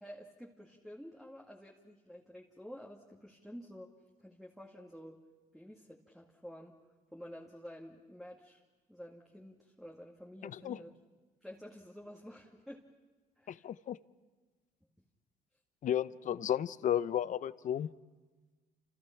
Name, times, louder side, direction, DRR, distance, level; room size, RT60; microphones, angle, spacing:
voice 1, 0.0-3.9 4.2-5.2 5.5-6.8 7.1-8.6 8.9-11.0 11.4-12.9 13.4-13.7, equal, ahead, -1 dB, 2.2 m, -50 dB
voice 2, 10.4-10.8 13.5-14.0 15.8-17.9, left 10 dB, 50° left, 16 dB, 0.8 m, -33 dB
29.5 x 28.0 x 5.9 m, 1.3 s
cardioid pair, 110°, 17 cm